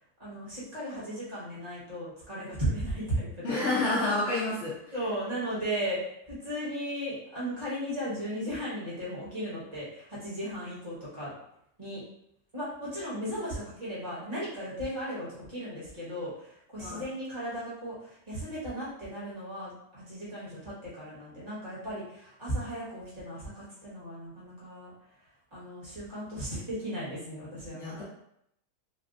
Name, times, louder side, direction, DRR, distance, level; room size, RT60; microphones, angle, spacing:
voice 1, 0.2-4.4 4.9-6.0 6.3-11.3 11.8-12.0 12.5-24.9 25.5-28.0, equal, 25° right, -9 dB, 1.5 m, -36 dB
voice 2, 3.4-4.9 16.8-17.1 27.7-28.0, left 2 dB, 60° left, -6 dB, 0.8 m, -29 dB
4.0 x 2.4 x 2.5 m, 0.77 s
omnidirectional pair, 1.7 m